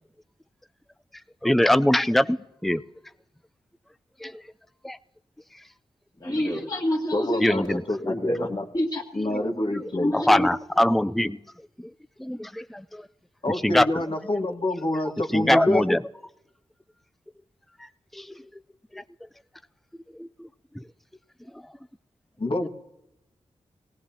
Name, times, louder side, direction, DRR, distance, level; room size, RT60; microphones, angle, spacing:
voice 1, 1.4-2.8 4.2-4.4 4.8-5.0 6.3-6.4 7.4-7.8 9.3-9.5 10.1-11.4 11.8-11.9 12.2-12.8 13.6-13.9 15.3-16.0 18.1-18.4 18.9-19.0 20.2-20.5, left 1 dB, ahead, 13 dB, 0.4 m, -22 dB
voice 2, 6.2-7.7 8.0-9.0 9.9-10.5, left 1 dB, 30° left, -6 dB, 2.3 m, -27 dB
voice 3, 7.1-8.6 9.1-10.1 13.4-15.9 22.4-22.7, left 1 dB, 45° left, 4 dB, 1.5 m, -27 dB
18.5 x 17.0 x 2.8 m, 0.89 s
cardioid pair, 45°, 12 cm